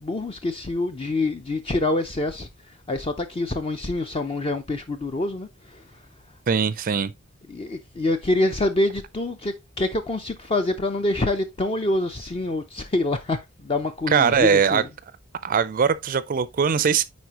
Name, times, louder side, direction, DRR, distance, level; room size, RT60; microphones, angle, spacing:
voice 1, 0.0-6.0 7.5-14.9, left 2 dB, 25° left, 0.5 m, -26 dB
voice 2, 6.5-7.1 14.1-14.8 15.4-17.0, right 6 dB, 40° right, 0.4 m, -21 dB
9.5 x 4.2 x 2.9 m
head